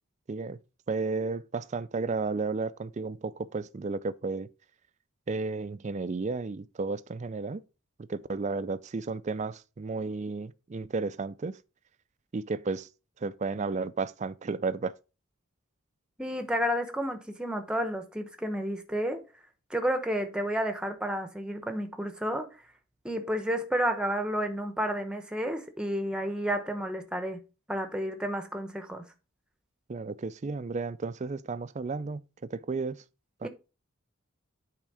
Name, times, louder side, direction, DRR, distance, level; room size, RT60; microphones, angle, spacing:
voice 1, 0.9-4.5 5.3-7.6 8.1-11.5 12.3-12.9 13.2-14.9 29.9-32.2 32.5-33.0 33.4-33.5, right 4 dB, 35° right, 0.4 m, -33 dB
voice 2, 16.2-19.2 19.7-22.5 23.0-27.4 27.7-29.0 33.4-33.5, equal, 5° right, 0.9 m, -31 dB
8.9 x 3.6 x 4.8 m
head